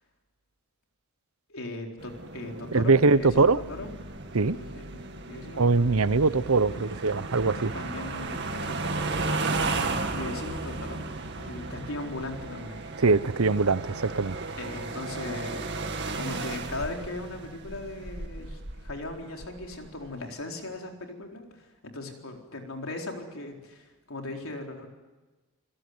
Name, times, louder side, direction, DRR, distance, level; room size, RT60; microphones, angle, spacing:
voice 1, 1.5-3.9 4.4-6.0 6.3-6.4 6.7-6.9 7.7-9.2 10.1-11.0 11.4-12.8 14.6-15.7 16.2-24.9, left 2 dB, 70° left, 2 dB, 4.2 m, -38 dB
sound 1, 2.0-20.2, right 3 dB, 50° right, 2.3 m, -35 dB
voice 2, 2.7-3.6 4.3-4.6 5.6-7.7 13.0-14.4, right 4 dB, 75° right, 16 dB, 0.8 m, -22 dB
27.5 x 16.5 x 9.6 m, 1.2 s
head